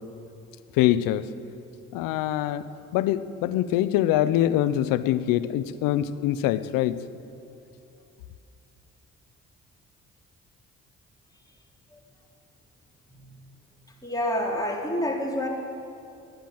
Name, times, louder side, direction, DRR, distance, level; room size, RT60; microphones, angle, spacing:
voice 1, 0.7-1.3 1.9-2.7 2.9-7.0, left 13 dB, 85° left, 15 dB, 0.6 m, -24 dB
voice 2, 14.0-15.5, left 1 dB, 10° left, -2 dB, 3.8 m, -28 dB
15.0 x 10.5 x 8.7 m, 2.7 s
supercardioid pair, 50°, 33 cm